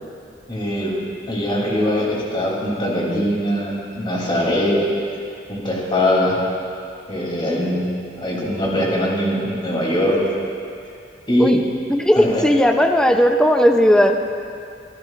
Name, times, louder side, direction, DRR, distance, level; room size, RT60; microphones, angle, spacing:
voice 1, 0.5-1.0 1.3-4.8 5.5-6.4 7.1-7.8 8.2-10.2 11.3-11.5 12.1-12.4, left 1 dB, 30° left, -4 dB, 3.1 m, -21 dB
voice 2, 11.9-14.2, equal, 5° left, 4 dB, 0.6 m, -16 dB
25.0 x 13.5 x 2.5 m, 2.4 s
head